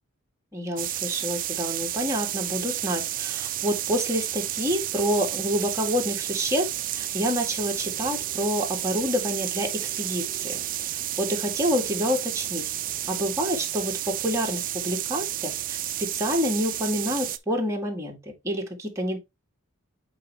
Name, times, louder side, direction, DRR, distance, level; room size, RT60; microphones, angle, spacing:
voice 1, 0.5-6.7 6.9-10.6 11.2-12.7 13.1-19.2, equal, 15° right, 1.7 m, -28 dB
sound 1, 0.8-17.4, right 13 dB, 40° right, 0.4 m, -31 dB
8.2 x 4.2 x 3.3 m
head